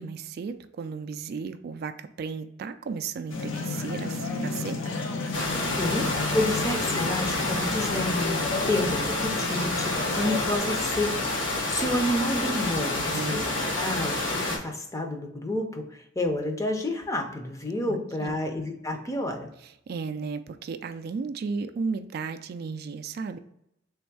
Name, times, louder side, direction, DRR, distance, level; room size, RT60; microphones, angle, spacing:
voice 1, 0.0-4.8 12.9-13.8 17.9-18.4 19.6-23.4, right 5 dB, 55° right, 9 dB, 0.3 m, -34 dB
sound 1, 3.3-10.6, left 3 dB, 90° left, 0.7 m, -32 dB
sound 2, 5.3-14.6, left 2 dB, 70° left, 1.3 m, -28 dB
voice 2, 5.8-19.5, left 1 dB, 15° left, 4 dB, 0.5 m, -30 dB
3.4 x 3.1 x 4.6 m, 0.79 s
head